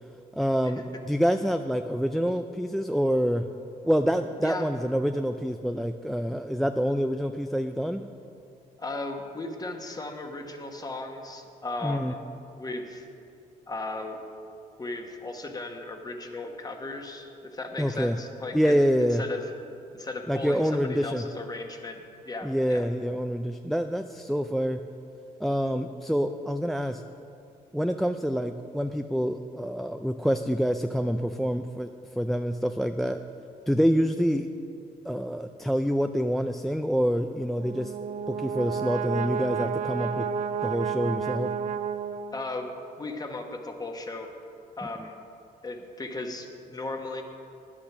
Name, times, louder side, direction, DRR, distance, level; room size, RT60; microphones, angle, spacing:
voice 1, 0.3-3.4 3.8-8.1 11.8-12.1 17.8-18.2 18.5-19.2 20.3-21.2 22.4-24.8 25.4-27.0 27.7-31.9 32.2-33.2 33.7-34.5 35.0-37.9 38.3-40.3 40.6-41.5, equal, ahead, 7 dB, 0.3 m, -26 dB
voice 2, 8.8-12.2 12.6-13.0 13.7-14.2 14.8-19.4 19.9-22.9 42.3-42.7 43.0-44.3 44.8-45.2 45.6-47.2, left 2 dB, 25° left, 4 dB, 1.3 m, -36 dB
Brass instrument, 37.5-42.6, right 7 dB, 50° right, 0.7 m, -31 dB
10.0 x 8.8 x 6.1 m, 2.6 s
cardioid pair, 90°, 16 cm